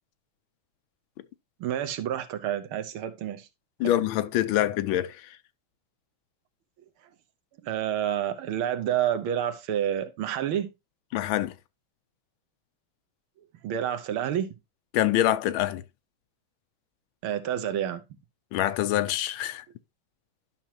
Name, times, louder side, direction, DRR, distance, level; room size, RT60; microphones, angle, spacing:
voice 1, 1.6-3.5 7.6-10.7 13.6-14.5 17.2-18.0, right 10 dB, 85° right, 1.8 m, -29 dB
voice 2, 3.8-5.3 11.1-11.5 14.9-15.8 18.5-19.6, left 13 dB, 75° left, 1.4 m, -25 dB
11.5 x 6.0 x 2.9 m
omnidirectional pair, 2.3 m